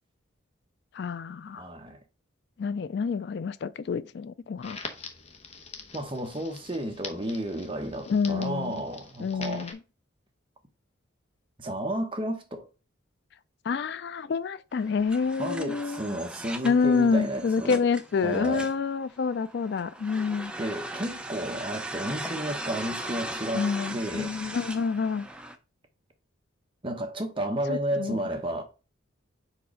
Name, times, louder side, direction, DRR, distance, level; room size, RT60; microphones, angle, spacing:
voice 1, 0.9-1.6 2.6-4.8 8.1-8.8 9.2-9.8 13.7-16.0 16.6-20.5 23.5-25.3 27.7-28.2, left 5 dB, 55° left, 0.3 m, -27 dB
voice 2, 1.5-2.0 5.9-9.7 11.6-12.7 15.4-17.8 18.2-18.7 20.6-24.4 26.8-28.6, right 1 dB, 25° right, 1.1 m, -32 dB
Crackle, 4.6-9.7, left 4 dB, 30° left, 1.0 m, -44 dB
sound 1, 14.7-25.6, right 1 dB, 5° right, 0.5 m, -39 dB
4.7 x 4.1 x 5.0 m
head